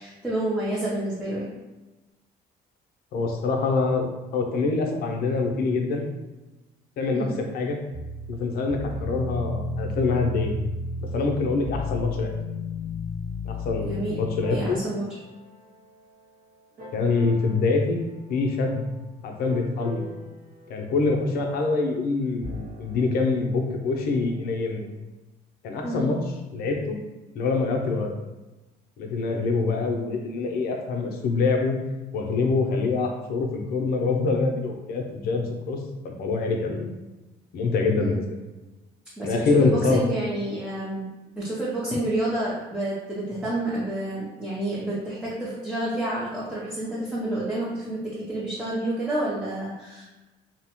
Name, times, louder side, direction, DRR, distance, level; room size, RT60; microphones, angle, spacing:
voice 1, 0.0-1.5 7.1-7.4 13.8-14.2 14.5-15.1 25.8-26.0 38.0-38.1 39.2-41.1 41.3-50.0, right 1 dB, 5° right, -8 dB, 0.6 m, -29 dB
voice 2, 3.1-6.1 7.0-7.3 7.5-7.8 8.3-10.5 11.1-12.3 13.4-14.8 16.9-18.0 18.3-18.8 19.2-20.0 20.7-24.9 25.6-26.2 26.5-27.0 27.3-28.1 29.0-31.8 32.1-35.8 36.0-36.9 37.5-38.2 39.2-40.0, left 3 dB, 65° left, 2 dB, 0.5 m, -25 dB
sound 1, 7.9-16.2 16.8-17.6 19.5-21.2 22.3-24.9, left 2 dB, 60° right, 0.7 m, -35 dB
2.8 x 2.1 x 2.9 m, 1.1 s
cardioid pair, 110°, 17 cm